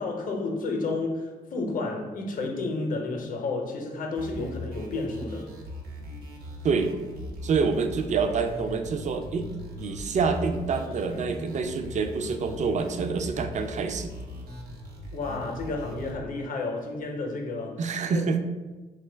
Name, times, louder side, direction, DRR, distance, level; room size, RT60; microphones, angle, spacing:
voice 1, 0.0-5.5 15.1-17.8 18.1-18.3, left 3 dB, 55° left, 1 dB, 0.6 m, -31 dB
sound 1, 4.1-16.1, equal, 70° right, 0.8 m, -39 dB
voice 2, 7.4-9.5 9.8-14.1 17.8-18.4, right 5 dB, 45° right, 6 dB, 0.4 m, -27 dB
2.9 x 2.2 x 3.3 m, 1.2 s
supercardioid pair, 60°, 16 cm